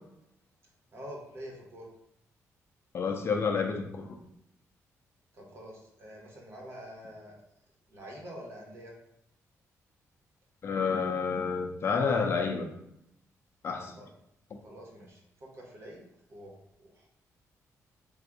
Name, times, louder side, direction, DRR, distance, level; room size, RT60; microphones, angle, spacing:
voice 1, 0.9-1.9 5.3-7.4 7.9-8.9 14.0-14.1 14.6-17.1, equal, 50° right, -1 dB, 1.3 m, -46 dB
voice 2, 2.9-4.1 10.6-12.7 13.6-13.9, left 5 dB, 45° left, 3 dB, 0.6 m, -29 dB
3.9 x 2.6 x 4.7 m, 0.79 s
cardioid pair, 140°, 6 cm